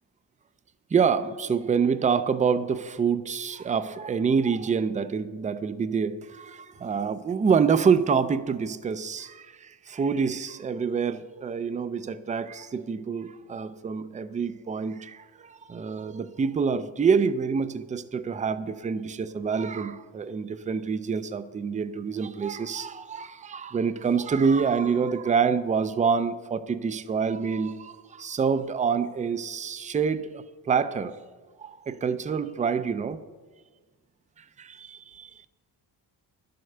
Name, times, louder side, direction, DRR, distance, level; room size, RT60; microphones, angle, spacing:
voice 1, 0.9-31.2 31.6-33.2 34.4-35.3, right 6 dB, 20° right, 0.3 m, -27 dB
11.0 x 7.8 x 6.6 m
wide cardioid pair, 155°, 44 cm